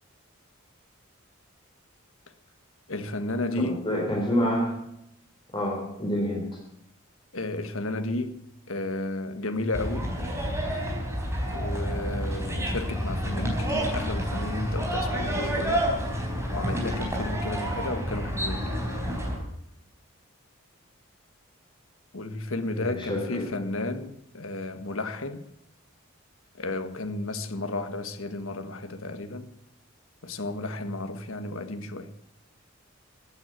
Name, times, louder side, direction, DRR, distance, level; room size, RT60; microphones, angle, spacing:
voice 1, 2.9-3.9 7.3-10.1 11.5-15.9 16.5-18.8 22.1-25.4 26.5-29.5 30.2-32.1, left 2 dB, 75° left, 1.6 m, -33 dB
voice 2, 3.6-4.8 5.5-6.6 22.7-23.5, equal, 20° left, 3.9 m, -28 dB
sound 1, 9.7-19.4, equal, 15° right, 4.1 m, -29 dB
15.5 x 9.6 x 9.3 m
head